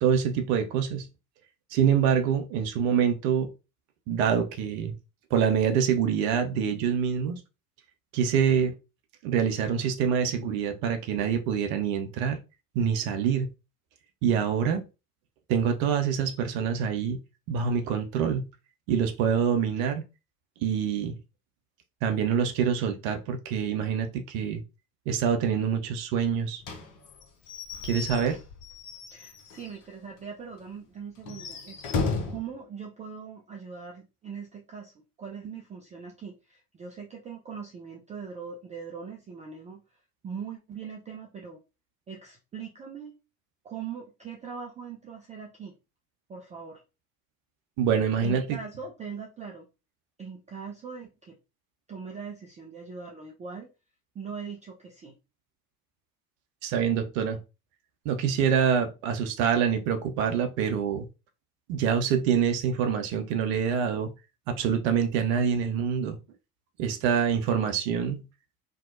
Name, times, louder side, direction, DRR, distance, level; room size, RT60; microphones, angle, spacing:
voice 1, 0.0-1.1 1.7-3.5 4.1-5.0 5.3-7.4 8.1-8.8 9.2-12.4 12.7-13.5 14.2-14.9 15.5-17.2 17.5-18.5 18.9-20.0 20.6-21.2 22.0-24.6 25.1-26.6 27.8-28.4 47.8-48.6 56.6-57.4 58.0-61.1 61.7-64.1 64.5-66.2 66.8-68.2, right 7 dB, 60° right, 0.6 m, -25 dB
Slam / Squeak / Wood, 26.6-29.8 30.2-30.3 30.6-30.7 31.2-32.5, left 4 dB, 45° left, 0.8 m, -34 dB
voice 2, 29.1-34.9 35.2-39.8 40.2-41.6 42.1-43.1 43.6-45.7 46.3-46.8 48.2-49.7 50.2-51.3 51.9-53.7 54.1-55.1, right 6 dB, 20° right, 0.3 m, -41 dB
2.6 x 2.0 x 2.4 m
figure-of-eight pair, 60°, 46 cm